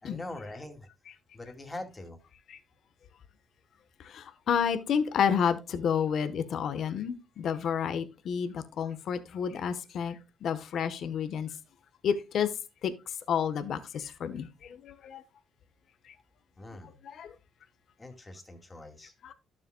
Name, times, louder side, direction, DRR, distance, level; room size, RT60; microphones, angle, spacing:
voice 1, 0.0-0.9 1.3-2.2 16.6-16.9 18.0-19.1, left 2 dB, 20° left, 2.5 m, -43 dB
voice 2, 4.0-11.5 12.0-12.5 12.8-15.2 16.1-16.2 17.1-17.3 19.2-19.3, left 7 dB, 65° left, 1.0 m, -30 dB
12.0 x 7.4 x 2.2 m
cardioid pair, 90°, 0 cm